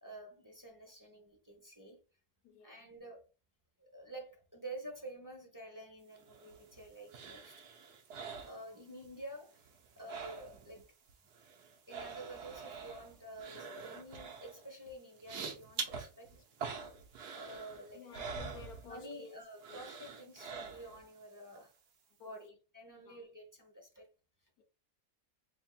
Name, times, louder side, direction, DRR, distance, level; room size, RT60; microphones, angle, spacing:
voice 1, 0.0-2.0 2.6-3.2 3.8-7.7 8.1-9.7 10.0-11.0 11.9-16.4 17.3-18.0 18.8-21.7 22.2-22.5 22.7-24.1, right 1 dB, 15° right, 0.7 m, -50 dB
voice 2, 2.4-2.8 11.9-12.1 17.9-19.4 19.7-19.8 22.2-22.5 22.9-23.2 24.6-24.7, left 5 dB, 70° left, 1.3 m, -53 dB
sound 1, 6.2-9.2 9.5-10.8 11.1-19.2 19.6-21.1 21.5-21.6, right 5 dB, 85° right, 1.4 m, -46 dB
4.3 x 3.5 x 2.3 m
omnidirectional pair, 1.7 m